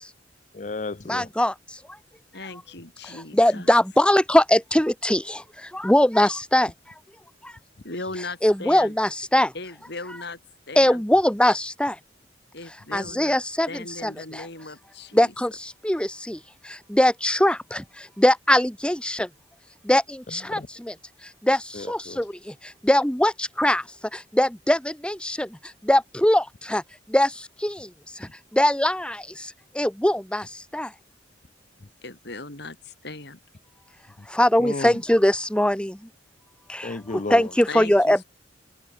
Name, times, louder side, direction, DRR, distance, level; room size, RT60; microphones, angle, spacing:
voice 1, 0.5-1.3 20.5-20.7 21.7-22.2 34.2-34.3 34.6-35.0 36.8-37.5, left 3 dB, 40° left, 0.7 m, -33 dB
voice 2, 1.1-1.5 3.3-5.2 5.8-6.7 8.4-9.5 10.8-11.9 12.9-13.7 14.0-14.1 15.1-15.5 15.8-16.4 16.9-17.8 18.2-19.2 19.9-20.0 20.5-20.6 21.5-21.6 21.9-22.2 22.9-23.3 23.6-23.8 24.4-24.8 25.0-25.5 25.9-26.4 26.7-26.8 27.1-27.3 27.6-27.7 28.6-29.1 29.8-30.4 30.7-30.9 34.4-35.9 37.3-38.2, left 1 dB, 5° left, 1.4 m, -20 dB
voice 3, 2.3-3.7 7.8-8.9 9.5-10.4 10.7-11.0 12.5-13.4 13.7-15.3 32.0-33.4 37.7-38.2, left 3 dB, 65° left, 5.0 m, -37 dB
open air
head